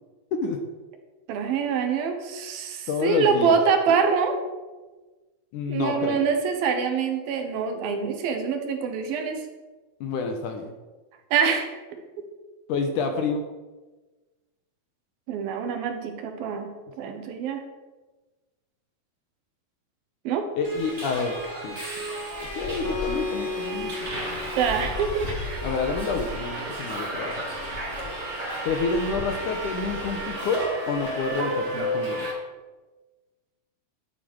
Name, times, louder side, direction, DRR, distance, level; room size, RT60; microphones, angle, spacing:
voice 1, 1.3-4.4 5.7-9.4 11.3-12.3 15.3-16.7 17.0-17.6 20.2-20.5 24.6-25.3, right 6 dB, 75° right, 6 dB, 2.9 m, -25 dB
voice 2, 2.9-3.6 5.5-6.2 10.0-10.7 12.7-13.4 20.5-21.8 22.5-24.2 25.6-27.4 28.7-32.3, left 4 dB, 70° left, 5 dB, 2.2 m, -28 dB
Subway metro underground, 20.6-32.3, right 1 dB, 20° right, 2.1 m, -32 dB
Acoustic guitar, 22.8-26.1, left 4 dB, 45° left, 1.3 m, -35 dB
11.5 x 7.8 x 6.2 m, 1.2 s
omnidirectional pair, 4.4 m